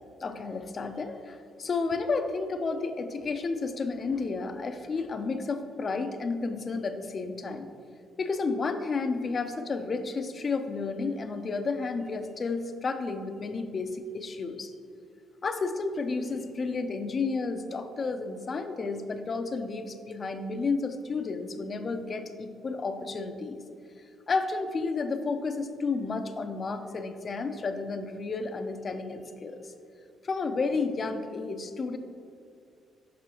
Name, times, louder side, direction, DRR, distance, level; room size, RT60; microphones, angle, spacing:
voice 1, 0.2-7.7 8.2-14.7 15.4-23.6 24.3-29.7 30.2-32.0, left 4 dB, 40° left, 8 dB, 0.5 m, -31 dB
6.1 x 6.0 x 2.9 m, 2.3 s
cardioid pair, 95°, 0 cm